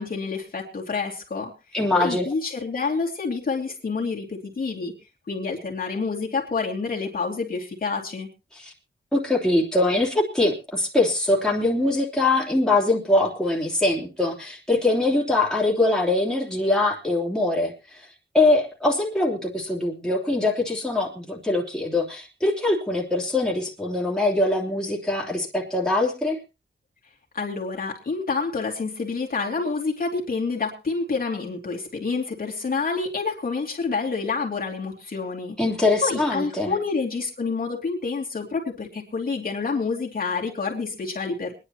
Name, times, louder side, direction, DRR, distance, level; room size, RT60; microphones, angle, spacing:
voice 1, 0.0-1.5 1.9-4.9 5.3-8.3 27.3-35.6 36.0-41.5, left 4 dB, 45° left, -2 dB, 2.7 m, -28 dB
voice 2, 1.7-2.2 8.5-8.7 9.1-18.1 18.3-26.4 35.6-36.8, left 2 dB, 5° left, -3 dB, 3.1 m, -23 dB
25.0 x 10.5 x 2.9 m, 0.29 s
wide cardioid pair, 145°, 20 cm